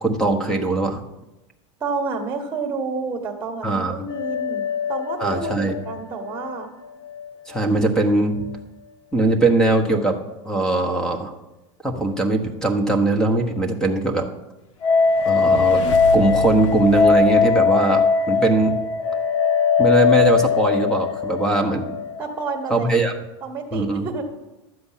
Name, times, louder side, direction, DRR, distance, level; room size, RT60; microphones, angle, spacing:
voice 1, 0.0-1.0 3.6-3.9 5.2-5.7 7.5-8.5 9.1-10.2 10.4-11.3 11.8-14.3 15.2-15.8 16.1-18.8 19.8-22.0 22.7-23.1 23.7-24.3, right 2 dB, 5° left, 6 dB, 1.1 m, -20 dB
voice 2, 1.8-6.7 22.2-22.9 23.4-24.3, right 4 dB, 15° right, 1 dB, 1.4 m, -29 dB
sound 1, 4.1-7.3 7.5-7.6 14.8-22.8, left 5 dB, 30° left, 0.7 m, -20 dB
sound 2, 14.8-18.4, left 2 dB, 80° left, 1.2 m, -31 dB
12.5 x 7.8 x 5.7 m, 0.98 s
supercardioid pair, 150°, 16 cm